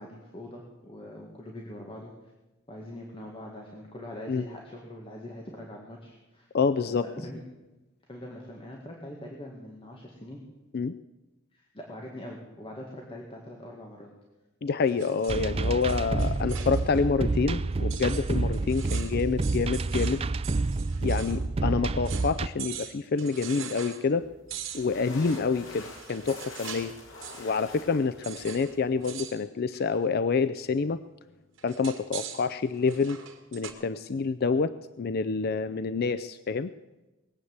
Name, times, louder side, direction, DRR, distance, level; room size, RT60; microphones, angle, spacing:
voice 1, 0.0-2.1 2.7-6.5 6.8-7.4 8.1-10.4 11.5-14.1 15.3-15.8 16.4-16.7, left 1 dB, 30° left, -1 dB, 1.9 m, -43 dB
voice 2, 6.5-7.1 10.7-11.0 14.6-20.2 21.0-24.3 24.7-26.9 27.4-31.0 31.6-33.2 33.5-36.7, left 5 dB, 50° left, 12 dB, 0.4 m, -27 dB
sound 1, 14.8-17.1 17.4-17.5 17.9-21.4 21.7-21.8 22.0-22.3 22.6-24.0 24.5-27.0 27.2-27.6 28.2-28.7 29.0-29.4 29.7-30.1 31.6-33.7, right 9 dB, 85° right, 2.2 m, -42 dB
sound 2, 15.3-22.5, right 3 dB, 30° right, 0.4 m, -28 dB
sound 3, 24.2-29.2, left 3 dB, 80° left, 3.0 m, -47 dB
20.5 x 8.3 x 8.0 m, 1.1 s
head